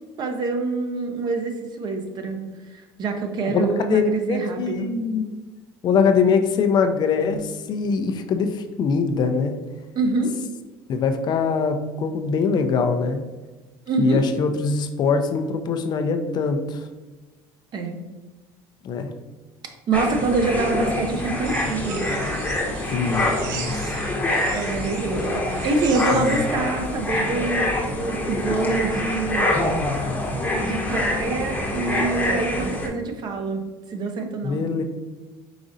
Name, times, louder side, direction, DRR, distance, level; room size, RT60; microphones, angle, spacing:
voice 1, 0.2-4.9 10.0-10.4 13.9-14.3 17.7-18.0 19.9-22.1 24.5-25.4 25.6-29.7 30.6-34.7, right 3 dB, 45° right, 5 dB, 0.7 m, -26 dB
voice 2, 3.5-5.3 5.8-9.5 10.9-13.2 14.0-16.9 18.8-19.1 22.9-24.0 26.1-26.5 34.4-34.8, left 5 dB, 45° left, 7 dB, 0.5 m, -23 dB
sound 1, 19.9-32.9, left 1 dB, 15° left, 0.9 m, -25 dB
sound 2, 21.4-26.5, right 6 dB, 90° right, 0.7 m, -38 dB
5.0 x 3.8 x 2.6 m, 1.2 s
cardioid pair, 115°, 10 cm